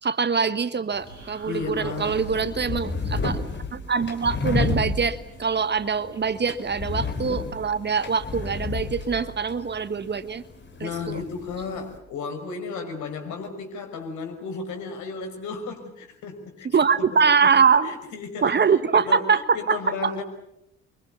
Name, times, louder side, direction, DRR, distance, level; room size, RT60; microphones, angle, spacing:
voice 1, 0.0-3.4 3.7-10.4 10.8-11.2 16.7-17.9 18.4-20.1, right 6 dB, 30° right, 14 dB, 1.3 m, -23 dB
sound 1, 0.9-12.0, left 3 dB, 35° left, 4.2 m, -32 dB
sound 2, 1.1-2.7, right 3 dB, 90° right, 7.1 m, -41 dB
voice 2, 1.4-2.2 10.8-16.7 17.0-17.5 17.8-18.6 18.9-20.2, left 5 dB, 60° left, 5 dB, 5.8 m, -34 dB
28.5 x 25.0 x 7.0 m, 0.79 s
figure-of-eight pair, 50°, 33 cm